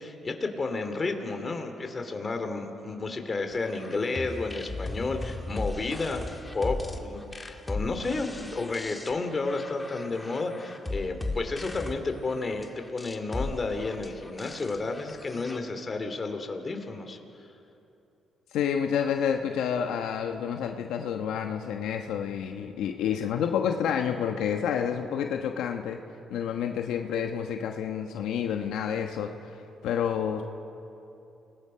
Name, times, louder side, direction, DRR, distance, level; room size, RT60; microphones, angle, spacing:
voice 1, 0.0-6.2 6.5-17.2, left 3 dB, 30° left, 5 dB, 2.6 m, -31 dB
sound 1, 3.6-15.6, left 2 dB, 15° left, 1.7 m, -37 dB
voice 2, 18.5-26.0 26.3-29.3 29.8-30.4, left 8 dB, 85° left, 4 dB, 1.1 m, -29 dB
29.5 x 19.5 x 5.7 m, 2.8 s
cardioid pair, 90°, 0 cm